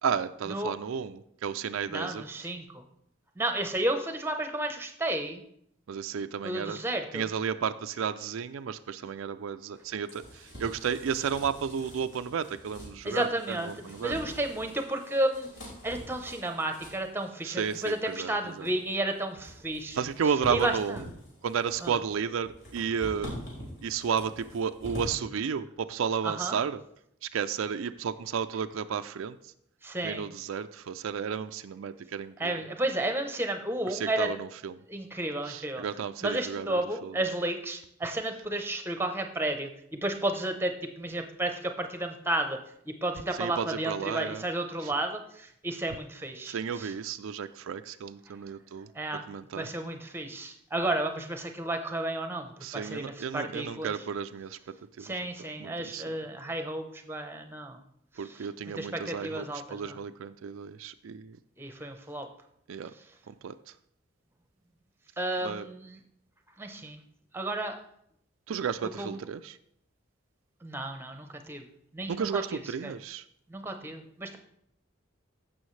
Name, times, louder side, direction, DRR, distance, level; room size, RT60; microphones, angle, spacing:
voice 1, 0.0-2.2 5.9-6.8 7.1-14.1 17.4-18.7 19.9-21.1 21.4-23.3 23.8-26.8 27.2-29.5 30.0-32.6 33.9-34.8 35.5-37.2 43.4-44.4 44.8-44.9 46.4-48.9 49.3-49.7 52.6-55.3 55.6-56.0 58.2-61.4 62.7-62.9 63.3-63.7 65.4-65.7 68.5-69.6 72.1-73.2, right 7 dB, 90° right, 10 dB, 0.4 m, -33 dB
voice 2, 1.9-2.8 3.4-5.4 6.4-7.2 13.0-13.7 14.0-15.5 15.8-20.0 20.5-21.0 21.8-21.9 26.2-26.6 29.8-30.2 32.4-34.3 34.9-35.8 36.2-42.6 42.9-46.9 48.9-49.2 49.5-53.9 55.0-57.8 58.2-58.5 58.7-60.0 61.6-62.3 65.2-66.0 66.6-67.0 67.3-67.8 69.0-69.2 70.6-71.7 71.9-72.4 72.8-72.9 73.5-74.4, right 1 dB, 10° right, 6 dB, 0.8 m, -32 dB
sound 1, 9.7-25.2, equal, 65° left, 4.6 m, -45 dB
15.5 x 6.2 x 3.2 m, 0.73 s
head